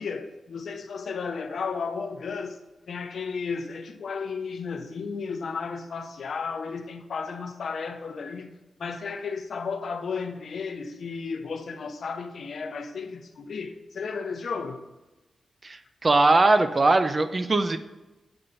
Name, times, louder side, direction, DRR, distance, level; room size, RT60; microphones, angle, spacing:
voice 1, 0.0-2.6 2.9-8.5 8.8-14.8, left 5 dB, 65° left, 0.6 m, -33 dB
voice 2, 15.6-17.8, right 2 dB, 30° right, 0.4 m, -21 dB
7.8 x 4.4 x 3.9 m
wide cardioid pair, 180°, 0 cm